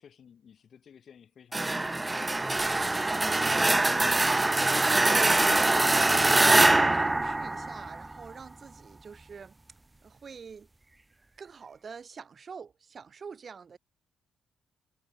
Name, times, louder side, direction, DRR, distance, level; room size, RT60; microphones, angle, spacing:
voice 1, 0.0-3.0, left 7 dB, 55° left, 6.5 m, -55 dB
Nahende Fremde, 1.5-8.2, right 2 dB, 15° right, 0.5 m, -23 dB
voice 2, 4.3-9.6 10.0-10.7 11.4-13.8, right 6 dB, 40° right, 6.2 m, -44 dB
cardioid pair, 90°, 0 cm